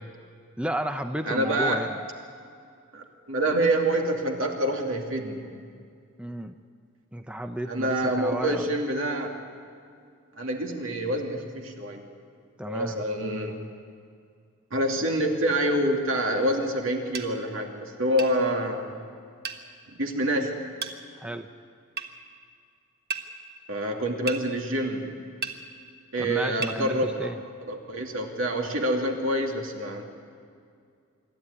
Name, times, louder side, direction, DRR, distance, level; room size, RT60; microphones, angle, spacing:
voice 1, 0.6-2.0 6.2-6.5 7.1-8.7 12.6-13.0 21.2-21.5 26.2-27.4, right 1 dB, 5° right, 7 dB, 0.6 m, -32 dB
voice 2, 1.2-1.9 2.9-5.6 7.7-9.4 10.3-12.0 12.6-13.6 14.7-19.0 19.9-20.6 23.7-25.2 26.1-27.3 27.7-30.0, right 1 dB, 70° right, 2 dB, 2.6 m, -27 dB
sound 1, 17.1-17.3 18.2-18.4 19.4-19.6 20.8-21.0 22.0-22.1 23.1-23.3 24.3-24.4 25.4-25.6 26.6-26.8, right 5 dB, 45° right, 1.4 m, -32 dB
25.5 x 13.0 x 9.8 m, 2.3 s
head